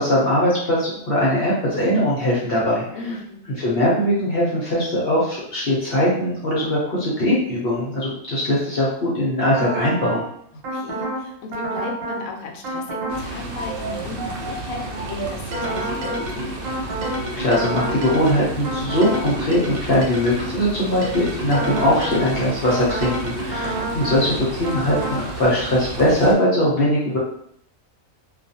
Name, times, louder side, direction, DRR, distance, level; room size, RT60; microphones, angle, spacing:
voice 1, 0.0-2.8 3.6-10.3 17.3-27.2, left 1 dB, 55° left, -6 dB, 0.8 m, -21 dB
voice 2, 2.9-3.5 10.7-16.7, left 4 dB, 80° left, 1 dB, 1.0 m, -35 dB
sound 1, 9.5-10.2 10.6-11.2 11.5-12.2 12.6-13.2 13.5-20.6 21.0-24.2 24.6-25.2, right 1 dB, 80° right, 1.2 m, -29 dB
sound 2, 13.1-26.3, right 2 dB, 60° right, 0.6 m, -33 dB
2.3 x 2.3 x 2.7 m, 0.68 s
omnidirectional pair, 1.4 m